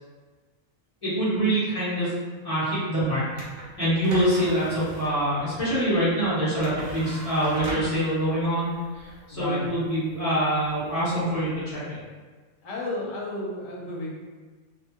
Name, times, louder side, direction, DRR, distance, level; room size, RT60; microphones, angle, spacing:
voice 1, 1.0-2.1 2.4-3.2 3.8-8.7 9.0-12.0, right 1 dB, 30° left, -12 dB, 1.1 m, -25 dB
sound 1, 3.3-11.8, right 1 dB, 70° right, 1.0 m, -40 dB
voice 2, 9.3-9.7 11.1-11.3 12.6-14.1, left 2 dB, 85° left, -2 dB, 1.1 m, -32 dB
2.8 x 2.3 x 2.9 m, 1.4 s
omnidirectional pair, 1.3 m